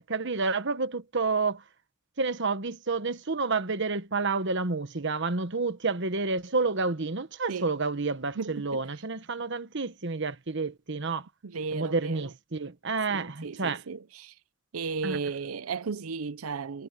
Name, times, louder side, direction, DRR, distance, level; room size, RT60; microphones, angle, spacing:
voice 1, 0.1-1.6 2.2-11.3 11.7-13.8 15.0-15.2, right 4 dB, 55° right, 1.3 m, -29 dB
voice 2, 8.4-8.8 11.4-12.3 13.1-14.3 14.7-16.9, right 5 dB, 85° right, 0.6 m, -35 dB
head